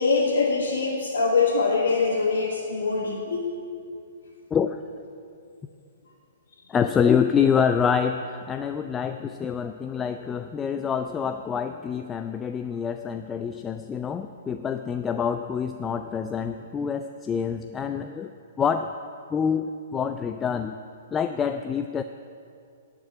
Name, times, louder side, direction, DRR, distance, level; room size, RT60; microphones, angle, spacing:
voice 1, 0.0-3.5, left 4 dB, 70° left, -5 dB, 1.6 m, -23 dB
voice 2, 4.5-4.8 6.7-18.3 18.6-18.9 19.3-20.7 21.1-22.0, left 7 dB, 20° left, 8 dB, 0.4 m, -26 dB
10.5 x 6.1 x 8.6 m, 2.4 s
hypercardioid pair, 120°, 0 cm